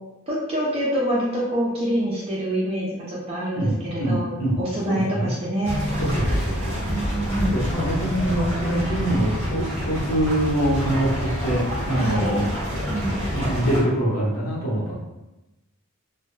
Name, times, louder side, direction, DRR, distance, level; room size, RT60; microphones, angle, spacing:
voice 1, 0.3-5.8 6.8-7.6 12.0-12.3 12.9-13.1, right 1 dB, 25° right, -5 dB, 0.4 m, -26 dB
voice 2, 3.5-4.6 4.9-5.3 6.0-12.5 13.3-15.0, right 1 dB, 75° left, -5 dB, 0.8 m, -24 dB
sound 1, 5.6-13.8, equal, 10° left, 0.9 m, -27 dB
2.2 x 2.0 x 3.0 m, 1.0 s
head